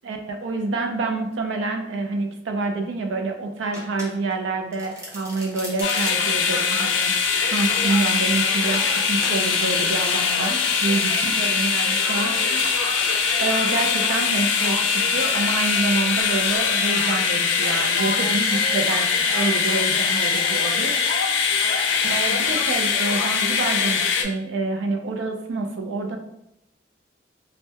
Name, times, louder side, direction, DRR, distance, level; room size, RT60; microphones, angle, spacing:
voice 1, 0.0-13.1 13.4-21.5 22.0-26.2, right 3 dB, 80° right, 4 dB, 0.4 m, -27 dB
Domestic sounds home sounds, 3.7-4.4 4.7-6.4 7.0-8.2 8.7-8.9 9.2-9.4, equal, 15° right, 0.6 m, -37 dB
sound 1, 5.8-24.2, left 5 dB, 75° left, 0.3 m, -22 dB
2.2 x 2.1 x 2.7 m, 0.84 s
head